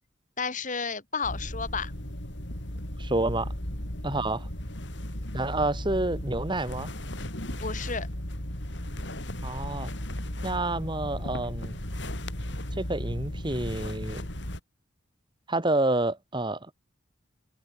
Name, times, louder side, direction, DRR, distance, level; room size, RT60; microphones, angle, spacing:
voice 1, 0.4-1.9 7.6-8.1, left 5 dB, 40° left, 2.9 m, -32 dB
sound 1, 1.2-14.6, left 1 dB, 65° left, 5.5 m, -35 dB
voice 2, 3.0-3.5 4.0-4.5 5.3-6.9 9.4-9.9 10.4-11.8 12.8-14.3 15.5-16.6, right 2 dB, 25° right, 2.2 m, -28 dB
open air
head